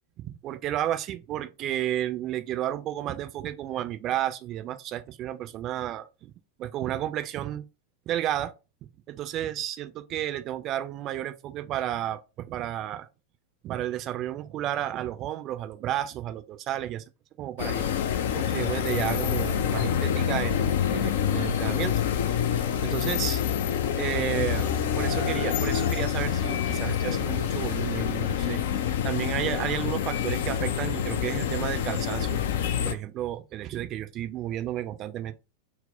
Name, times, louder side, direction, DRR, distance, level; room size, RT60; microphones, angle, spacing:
voice 1, 0.2-6.3 6.6-7.6 8.1-8.5 9.1-13.1 13.6-17.0 17.4-17.9 18.3-21.9 22.8-23.4 24.0-32.4 32.8-35.3, right 12 dB, 35° right, 0.4 m, -32 dB
sound 1, 17.6-32.9, left 9 dB, 55° left, 0.4 m, -27 dB
4.1 x 2.1 x 3.8 m
figure-of-eight pair, 90°, 0 cm